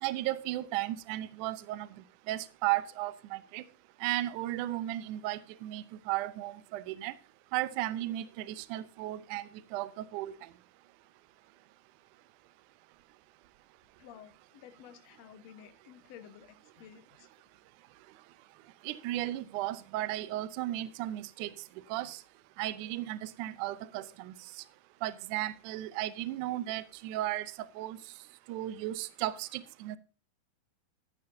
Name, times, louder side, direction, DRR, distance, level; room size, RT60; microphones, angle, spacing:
voice 1, 0.0-1.9 2.3-3.6 4.0-7.1 7.5-10.3 18.8-21.5 21.9-22.2 22.6-24.3 25.0-27.5 27.8-28.0 28.5-30.0, right 15 dB, 85° right, 1.8 m, -35 dB
voice 2, 14.0-17.3, left 9 dB, 80° left, 1.5 m, -53 dB
14.5 x 13.0 x 2.7 m
omnidirectional pair, 4.6 m